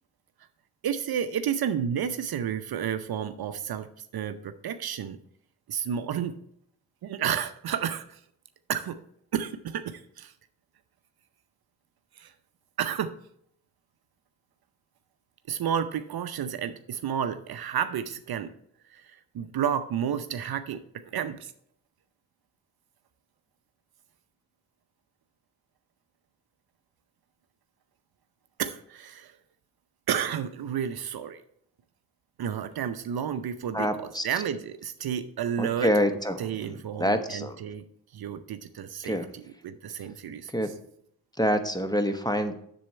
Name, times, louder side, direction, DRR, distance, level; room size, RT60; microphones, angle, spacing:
voice 1, 0.8-5.2 5.7-6.4 7.0-8.2 8.7-9.0 9.3-10.3 12.1-12.3 12.8-13.1 15.5-18.5 18.9-21.5 28.6-29.4 30.1-31.4 32.4-33.9 34.2-35.9 36.4-37.8 38.1-39.2 39.6-40.5, right 8 dB, 50° right, 10 dB, 0.7 m, -31 dB
voice 2, 33.7-34.3 35.6-37.6 39.0-39.3 40.5-40.7 41.4-42.6, equal, 10° left, 8 dB, 1.1 m, -27 dB
7.5 x 7.2 x 4.4 m, 0.70 s
hypercardioid pair, 40°, 47 cm